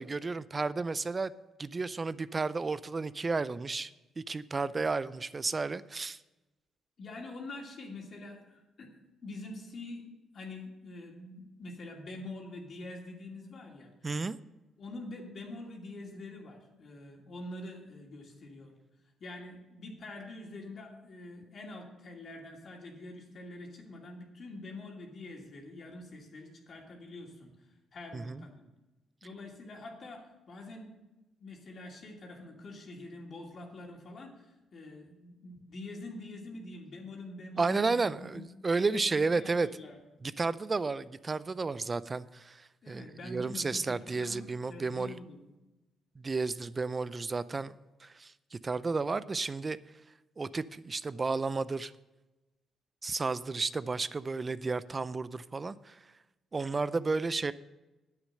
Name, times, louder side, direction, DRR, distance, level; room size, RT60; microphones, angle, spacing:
voice 1, 0.0-1.3 1.6-3.9 4.2-6.2 14.0-14.4 28.1-28.4 37.6-39.7 40.2-45.1 46.2-47.7 48.0-48.3 48.6-49.8 50.4-51.9 53.0-56.0 56.5-57.5, right 4 dB, 30° right, 17 dB, 0.4 m, -32 dB
voice 2, 7.0-14.1 14.8-18.7 19.2-28.6 29.2-30.9 31.4-38.5 38.9-40.0 42.8-45.4, left 2 dB, 50° left, 0 dB, 2.6 m, -45 dB
9.7 x 8.2 x 6.6 m, 1.0 s
cardioid pair, 90°, 0 cm